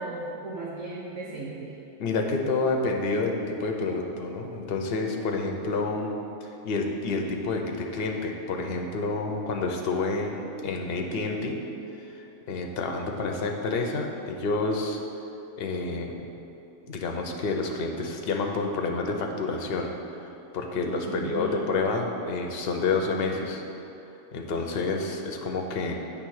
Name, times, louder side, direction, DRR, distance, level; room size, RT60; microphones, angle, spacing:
voice 1, 0.0-1.8 21.0-21.7, right 2 dB, 70° right, -5 dB, 1.2 m, -36 dB
voice 2, 2.0-6.1 6.4-11.6 12.1-15.0 15.6-16.2 16.9-19.9 20.5-23.6 24.3-25.9, left 3 dB, 50° left, 2 dB, 0.9 m, -29 dB
8.8 x 3.4 x 6.4 m, 2.8 s
omnidirectional pair, 1.5 m